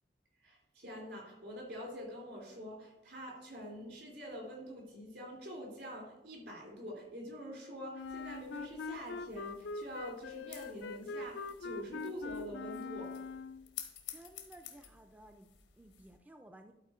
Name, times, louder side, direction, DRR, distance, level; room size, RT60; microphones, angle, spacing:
voice 1, 0.4-13.2, equal, 70° right, -1 dB, 3.0 m, -46 dB
Wind instrument woodwind instrument, 7.9-13.7, left 4 dB, 75° left, 0.4 m, -43 dB
sound 1, 8.0-16.2, left 10 dB, 90° left, 1.2 m, -53 dB
voice 2, 14.1-15.5 15.8-16.7, right 1 dB, 10° right, 5 dB, 0.3 m, -56 dB
11.5 x 4.2 x 4.3 m, 0.97 s
head